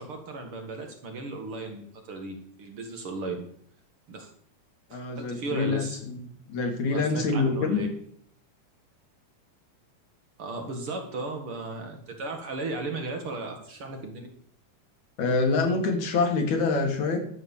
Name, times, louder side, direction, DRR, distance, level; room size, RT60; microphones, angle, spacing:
voice 1, 0.0-3.5 4.1-4.3 4.9-6.0 6.9-7.9 10.4-14.3, right 3 dB, 50° right, 3 dB, 2.3 m, -35 dB
voice 2, 4.9-7.9 15.2-17.2, left 4 dB, 75° left, 4 dB, 3.3 m, -26 dB
13.0 x 6.1 x 7.2 m, 0.65 s
omnidirectional pair, 3.4 m